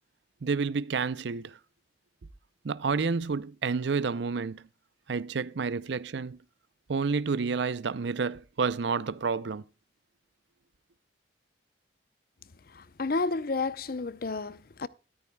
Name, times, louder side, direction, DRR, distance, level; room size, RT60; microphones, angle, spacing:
voice 1, 0.4-1.6 2.6-4.6 5.1-6.4 6.9-9.6, right 5 dB, 70° right, 0.5 m, -29 dB
voice 2, 12.7-14.9, left 3 dB, 50° left, 0.6 m, -31 dB
13.5 x 13.0 x 2.2 m
head